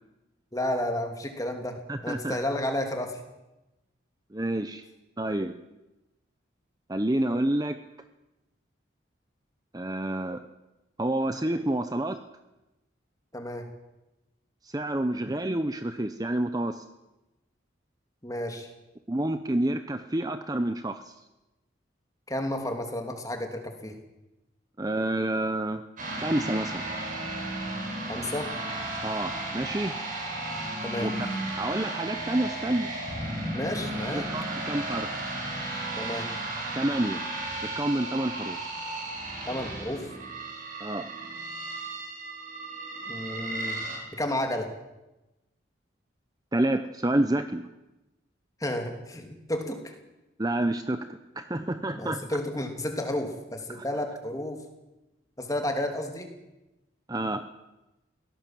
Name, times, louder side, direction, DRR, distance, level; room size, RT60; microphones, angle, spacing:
voice 1, 0.5-1.7 2.0-3.2 13.3-13.6 18.2-18.7 22.3-24.0 28.1-28.5 30.8-31.1 33.5-34.3 36.0-36.3 39.5-40.1 43.1-43.7 44.2-44.7 48.6-49.9 51.9-54.6 55.4-56.3, left 1 dB, 15° left, 4 dB, 3.0 m, -31 dB
voice 2, 1.9-2.4 4.3-4.8 5.2-5.5 6.9-7.8 9.7-10.4 11.0-12.2 14.6-16.8 19.1-21.1 24.8-25.8 26.1-26.7 29.0-29.9 31.0-31.3 31.5-32.9 34.0-35.1 36.7-37.2 37.6-38.6 40.8-41.1 46.5-47.7 50.4-52.4 53.7-54.2 57.1-57.4, right 1 dB, 20° right, 9 dB, 0.8 m, -29 dB
sound 1, 26.0-44.0, right 2 dB, 40° right, 7.4 m, -34 dB
22.5 x 17.5 x 7.7 m, 0.99 s
head